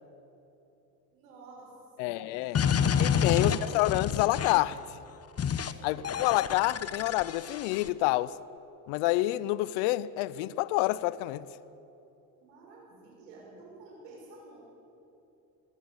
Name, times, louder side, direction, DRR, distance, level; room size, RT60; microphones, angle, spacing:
voice 1, 1.1-3.8 5.7-6.2 12.4-14.6, right 2 dB, 85° right, 6.6 m, -51 dB
voice 2, 2.0-2.6 3.0-4.8 5.8-8.4 8.9-11.5, left 17 dB, 75° left, 0.7 m, -28 dB
sound 1, 2.5-4.7 5.4-5.7 6.0-7.9, left 7 dB, 30° left, 1.0 m, -28 dB
21.0 x 16.5 x 8.9 m
supercardioid pair, 80°, 47 cm